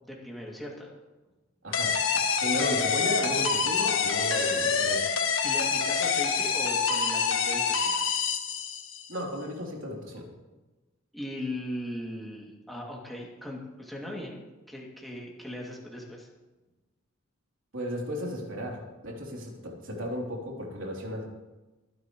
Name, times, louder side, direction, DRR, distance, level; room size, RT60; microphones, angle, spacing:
voice 1, 0.0-0.9 5.4-8.1 11.1-16.3, left 1 dB, ahead, -3 dB, 2.5 m, -39 dB
voice 2, 1.6-5.1 9.1-10.3 17.7-21.2, left 1 dB, 75° right, -1 dB, 3.4 m, -35 dB
sound 1, 1.7-9.1, left 5 dB, 75° left, 1.5 m, -26 dB
23.0 x 10.5 x 3.2 m, 1.1 s
head